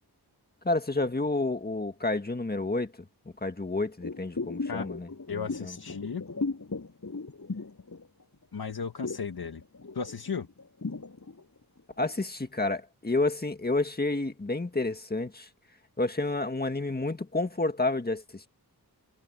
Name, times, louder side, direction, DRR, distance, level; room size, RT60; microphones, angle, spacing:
voice 1, 0.6-3.0 3.4-5.8 12.0-15.5 16.0-18.5, left 2 dB, 25° left, 1.8 m, -30 dB
sound 1, 4.0-8.4 8.7-12.2 12.6-12.7, left 3 dB, 45° left, 6.8 m, -37 dB
voice 2, 5.3-6.3 8.5-9.6 9.9-10.5, left 5 dB, 65° left, 1.8 m, -35 dB
wide cardioid pair, 110°, 39 cm